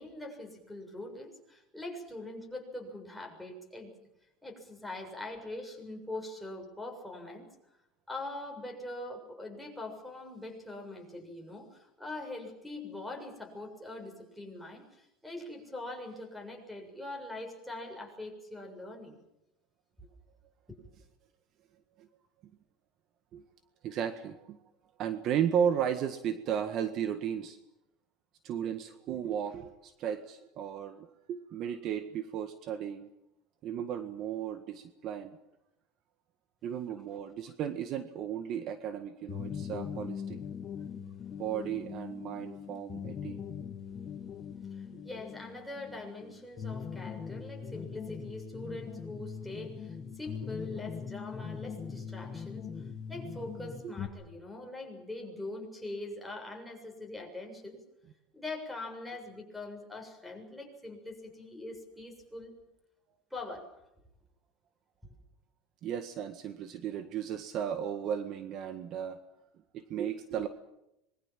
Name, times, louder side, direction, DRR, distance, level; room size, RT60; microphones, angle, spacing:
voice 1, 0.0-3.9 4.4-7.5 8.1-19.1 20.0-20.1 37.1-37.2 44.7-57.8 58.3-62.5 63.3-63.7, left 2 dB, ahead, 0 dB, 7.1 m, -43 dB
voice 2, 23.8-24.6 25.0-27.6 28.4-33.1 33.6-35.4 36.6-40.4 41.4-43.4 44.9-45.2 53.8-54.0 65.8-69.2 69.7-70.5, right 9 dB, 45° right, 10 dB, 1.7 m, -35 dB
sound 1, 39.3-54.1, left 7 dB, 25° left, 2.6 m, -41 dB
26.0 x 22.5 x 7.6 m, 0.87 s
supercardioid pair, 140°, 0 cm